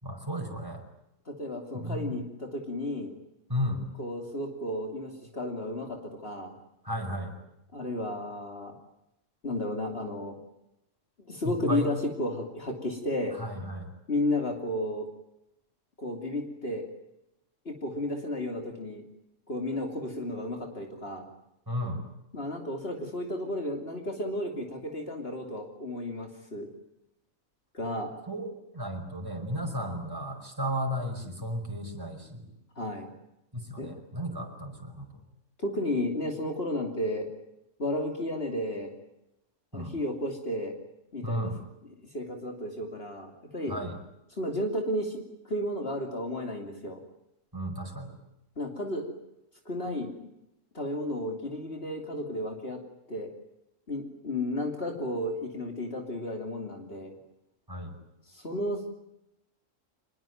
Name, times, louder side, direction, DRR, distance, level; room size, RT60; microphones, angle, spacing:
voice 1, 0.0-0.8 1.7-2.1 3.5-3.8 6.8-7.3 11.4-11.9 13.4-13.9 21.7-22.0 28.3-28.5 28.7-32.4 33.5-35.1 39.7-39.9 41.2-41.5 43.7-44.0 47.5-48.1 57.7-57.9, equal, 15° right, 2 dB, 5.5 m, -34 dB
voice 2, 1.3-3.1 4.0-6.5 7.7-8.7 9.4-10.3 11.3-13.4 14.1-15.1 16.0-16.8 17.6-19.0 19.5-21.3 22.3-26.7 27.7-28.1 32.8-33.1 33.8-33.9 35.6-37.3 37.8-38.9 39.7-40.7 41.1-41.5 42.1-43.7 44.4-47.0 48.6-49.1 49.6-50.3 50.7-52.8 53.1-53.3 53.9-57.1 58.3-59.0, left 1 dB, 50° left, 3 dB, 3.2 m, -33 dB
25.5 x 21.5 x 9.3 m, 0.86 s
omnidirectional pair, 1.3 m